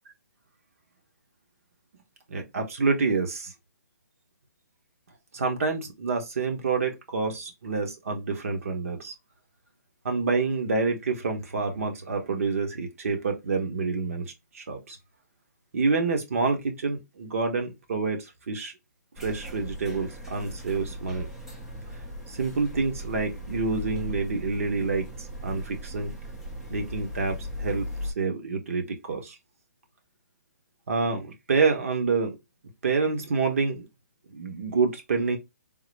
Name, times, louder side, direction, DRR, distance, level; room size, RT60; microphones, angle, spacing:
voice 1, 2.3-3.5 5.3-9.1 10.0-15.0 15.7-18.7 19.2-21.3 22.3-26.1 26.7-29.4 30.9-32.4 32.8-33.9 34.3-35.4, right 4 dB, 55° right, 1.0 m, -28 dB
sound 1, 19.2-28.1, equal, 5° right, 0.4 m, -38 dB
3.7 x 2.0 x 3.2 m
hypercardioid pair, 170°, 9 cm